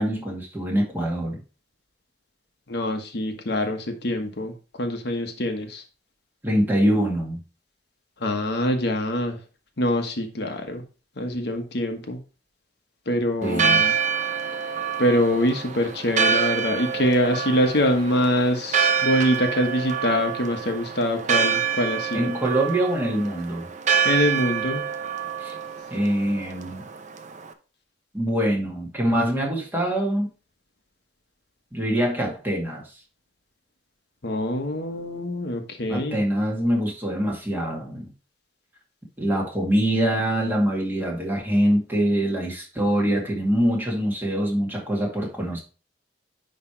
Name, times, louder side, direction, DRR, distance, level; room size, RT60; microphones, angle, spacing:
voice 1, 0.0-1.4 6.4-7.4 13.4-13.8 22.1-23.7 25.4-25.5 25.9-26.8 28.1-30.3 31.7-32.8 35.9-38.1 39.2-45.6, right 1 dB, 10° right, -2 dB, 2.0 m, -24 dB
voice 2, 2.7-5.8 8.2-9.4 9.8-10.8 11.2-12.2 13.1-13.9 15.0-22.3 24.0-24.8 34.2-36.2, left 1 dB, 65° left, 4 dB, 1.2 m, -24 dB
Church bell, 13.4-27.5, right 6 dB, 45° right, 0.7 m, -26 dB
9.9 x 3.3 x 4.4 m, 0.34 s
head